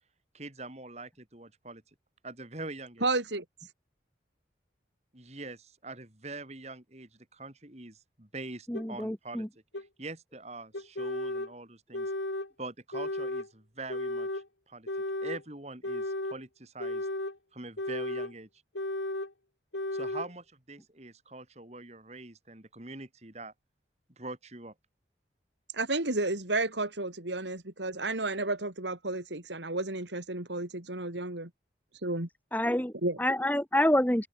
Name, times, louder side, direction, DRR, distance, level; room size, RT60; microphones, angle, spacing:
voice 1, 0.3-1.8 2.2-3.1 5.1-9.5 10.0-12.1 12.6-14.9 15.2-17.1 17.5-18.5 19.9-23.5 24.2-24.7, right 2 dB, 35° right, 2.8 m, -44 dB
voice 2, 3.0-3.4 25.7-31.5 32.0-32.3 33.0-33.2, right 2 dB, 85° right, 3.7 m, -32 dB
sound 1, 8.7-8.9 9.7-9.9 10.7-11.5 11.9-12.5 12.9-13.5 13.9-14.5 14.9-15.4 15.8-16.4 16.8-17.4 17.8-18.3 18.8-19.3 19.7-20.3, left 1 dB, 90° left, 3.9 m, -34 dB
voice 3, 8.7-9.5 32.5-32.9 33.2-34.3, left 1 dB, 10° left, 1.4 m, -27 dB
open air
head